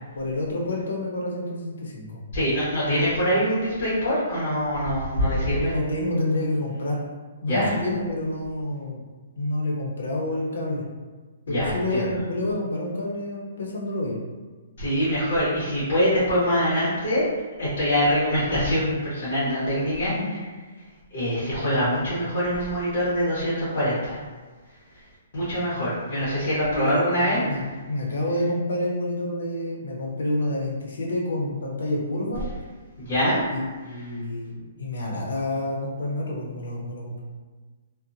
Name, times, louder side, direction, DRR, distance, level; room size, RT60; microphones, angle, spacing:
voice 1, 0.1-2.2 5.3-7.0 7.4-9.0 9.4-10.9 11.5-14.2 20.1-20.3 25.5-25.6 26.7-27.0 27.3-32.5 33.5-37.2, left 1 dB, 85° left, -2 dB, 0.7 m, -28 dB
voice 2, 2.3-5.7 7.5-7.7 11.5-12.1 14.8-17.3 17.6-20.1 21.1-24.2 25.3-27.4 33.0-33.4, equal, 50° left, -10 dB, 1.1 m, -24 dB
2.7 x 2.1 x 2.6 m, 1.3 s
hypercardioid pair, 175°, 0 cm